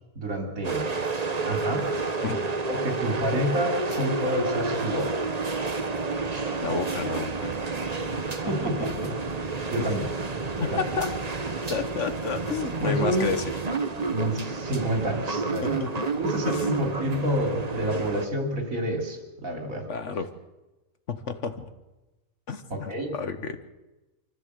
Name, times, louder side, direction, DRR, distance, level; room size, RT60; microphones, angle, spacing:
voice 1, 0.2-0.9 1.5-1.9 2.7-5.2 8.3-10.1 10.6-10.8 12.8-13.3 14.1-15.8 16.2-19.9 22.7-23.2, equal, 70° right, 4 dB, 3.7 m, -29 dB
sound 1, 0.6-18.3, right 3 dB, 30° right, 1.2 m, -30 dB
voice 2, 6.6-7.5 8.4-8.7 9.0-9.1 9.8-9.9 10.6-11.1 11.7-13.4 15.8-15.9 16.4-16.7 19.9-20.3 21.1-21.7 22.5-23.6, left 5 dB, 55° left, 10 dB, 1.4 m, -31 dB
24.5 x 14.5 x 8.1 m, 1.1 s
omnidirectional pair, 1.5 m